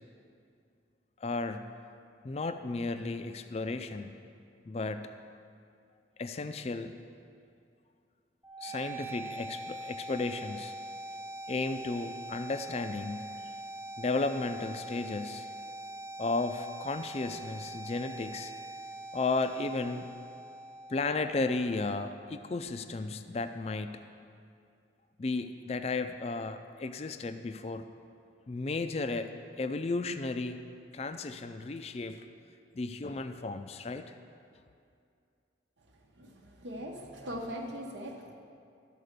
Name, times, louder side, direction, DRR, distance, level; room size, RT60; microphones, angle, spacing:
voice 1, 1.2-1.7 2.2-4.1 4.7-5.1 6.2-7.0 8.6-10.7 11.5-13.3 14.0-15.5 16.2-18.5 19.1-20.1 20.9-24.0 25.2-27.9 28.5-30.6 30.9-32.2 32.7-34.1, left 3 dB, 35° left, 9 dB, 0.4 m, -34 dB
sound 1, 8.4-22.4, right 2 dB, 15° right, 0.7 m, -43 dB
voice 2, 36.2-38.3, equal, 80° right, 1 dB, 1.0 m, -40 dB
12.5 x 4.7 x 6.6 m, 2.4 s
head